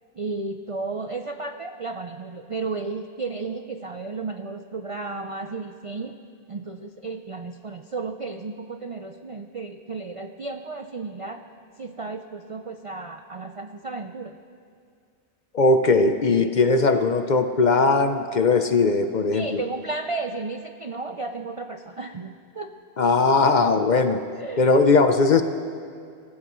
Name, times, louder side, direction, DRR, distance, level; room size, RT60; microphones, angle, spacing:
voice 1, 0.2-6.2 6.5-11.4 11.8-14.4 19.3-22.7 24.4-24.8, right 3 dB, 45° right, 6 dB, 0.4 m, -33 dB
voice 2, 15.5-19.6 23.0-24.2 24.6-25.4, left 3 dB, 50° left, 8 dB, 0.7 m, -19 dB
25.5 x 15.0 x 3.1 m, 2.2 s
omnidirectional pair, 1.2 m